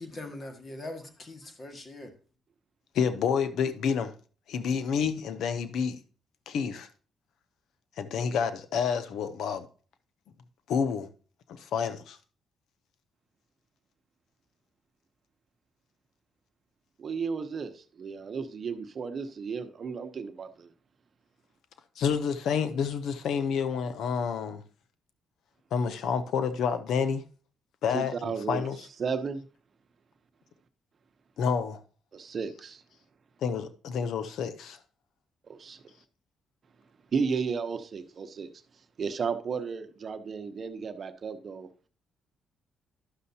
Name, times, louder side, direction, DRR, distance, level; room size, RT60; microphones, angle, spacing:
voice 1, 0.0-2.1, left 2 dB, 35° left, 1.7 m, -41 dB
voice 2, 2.9-4.1 4.5-6.0 6.5-6.9 8.0-9.7 10.7-11.1 11.5-12.2 22.0-24.6 25.7-27.2 27.8-28.8 31.4-31.8 33.4-34.8, left 6 dB, 75° left, 0.6 m, -29 dB
voice 3, 17.0-20.7 27.9-28.6 29.0-29.5 32.1-32.8 35.5-35.8 37.1-38.5 39.0-41.7, right 5 dB, 45° right, 0.8 m, -33 dB
11.5 x 6.4 x 2.7 m
cardioid pair, 90°, 0 cm